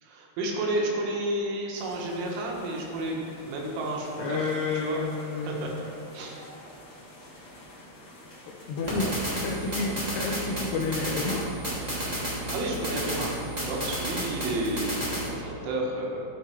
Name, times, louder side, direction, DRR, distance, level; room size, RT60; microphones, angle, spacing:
voice 1, 0.0-4.5 4.7-5.0 5.4-5.7 6.1-6.4 12.2-13.3 13.7-16.2, right 1 dB, 75° right, -1 dB, 3.7 m, -31 dB
sound 1, 1.7-9.9, left 1 dB, 65° left, 1.1 m, -49 dB
voice 2, 4.2-5.8 8.5-9.2 9.4-11.5, left 4 dB, 85° left, -2 dB, 2.3 m, -30 dB
sound 2, 8.8-15.3, right 1 dB, 25° right, 0.9 m, -32 dB
13.5 x 5.9 x 4.5 m, 2.6 s
omnidirectional pair, 5.8 m